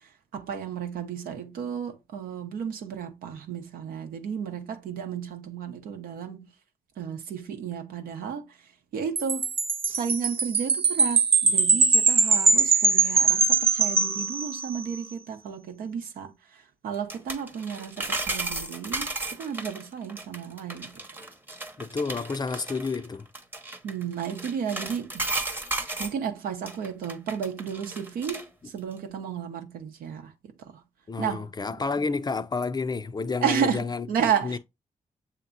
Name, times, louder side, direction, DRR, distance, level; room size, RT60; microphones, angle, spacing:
voice 1, 0.3-6.5 7.0-8.5 8.9-9.5 9.9-16.3 16.8-21.0 23.8-25.3 26.0-28.5 28.7-30.3 31.2-31.5 33.4-34.6, right 7 dB, 85° right, 0.8 m, -32 dB
Wind chime, 9.2-14.8, right 4 dB, 40° right, 0.6 m, -22 dB
sound 1, 16.9-26.2 26.7-28.4 28.8-28.9, right 2 dB, 15° right, 0.8 m, -34 dB
voice 2, 21.8-23.3 31.1-34.1 34.4-34.6, left 4 dB, 30° left, 0.4 m, -30 dB
6.9 x 2.9 x 2.5 m
supercardioid pair, 55°, 15 cm